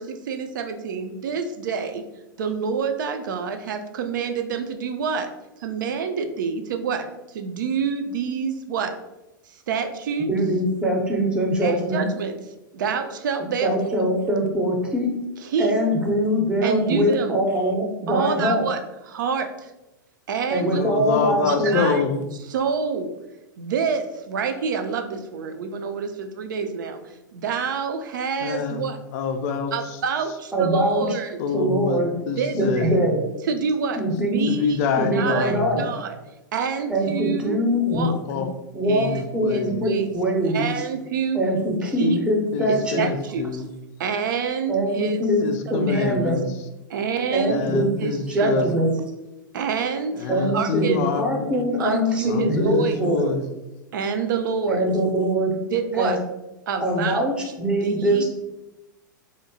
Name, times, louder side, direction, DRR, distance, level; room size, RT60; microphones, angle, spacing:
voice 1, 0.0-2.0 2.4-5.3 5.6-9.0 9.5-10.3 11.6-12.4 12.7-14.1 15.4-15.7 16.6-17.4 18.1-18.8 19.1-19.7 20.3-20.8 21.5-22.0 22.5-23.1 23.6-29.0 29.7-31.4 32.4-32.9 33.4-34.8 35.1-36.2 36.5-37.6 37.9-38.1 38.8-40.1 40.5-41.4 42.0-42.2 42.7-43.7 44.0-45.2 45.8-46.2 46.9-47.6 48.0-48.8 49.5-51.0 51.8-53.0 53.9-54.9 55.7-56.2 56.7-57.3 57.7-58.2, right 6 dB, 70° right, 7 dB, 0.4 m, -27 dB
voice 2, 10.3-12.0 13.6-15.2 15.6-18.6 20.5-21.9 30.5-31.0 31.5-32.1 32.5-33.2 34.0-34.5 35.0-35.9 36.9-38.4 38.7-40.7 41.3-43.0 44.7-45.4 45.7-46.5 47.3-47.9 48.3-48.9 50.3-53.3 54.7-55.6 55.9-56.2 56.8-58.2, equal, 10° right, 0 dB, 0.5 m, -23 dB
voice 3, 20.7-22.2 28.4-28.8 29.1-29.7 31.4-33.0 34.5-35.7 38.0-38.5 38.9-39.9 42.0-43.7 45.4-46.5 47.5-48.7 50.2-51.5 52.3-53.4, left 5 dB, 50° left, 7 dB, 0.4 m, -26 dB
2.7 x 2.0 x 2.6 m, 0.97 s
hypercardioid pair, 105°, 11 cm